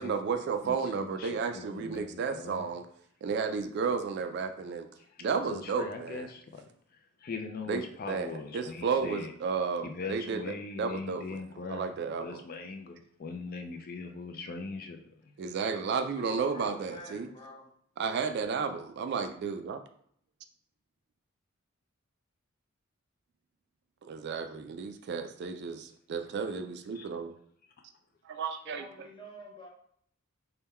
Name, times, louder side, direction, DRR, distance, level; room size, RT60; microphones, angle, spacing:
voice 1, 0.0-2.9 3.2-4.9 5.2-6.3 7.7-11.4 11.7-12.4 15.4-17.3 18.0-19.8 24.0-27.3 28.2-28.9, right 5 dB, 50° right, 8 dB, 0.3 m, -33 dB
voice 2, 0.6-2.6 5.0-5.1 5.5-6.6 7.2-9.3 9.8-11.9 12.2-15.0 26.9-27.1, left 4 dB, 45° left, 4 dB, 0.4 m, -40 dB
voice 3, 16.2-17.7 28.6-29.7, left 1 dB, 20° left, -1 dB, 0.7 m, -46 dB
3.5 x 2.2 x 4.2 m, 0.65 s
head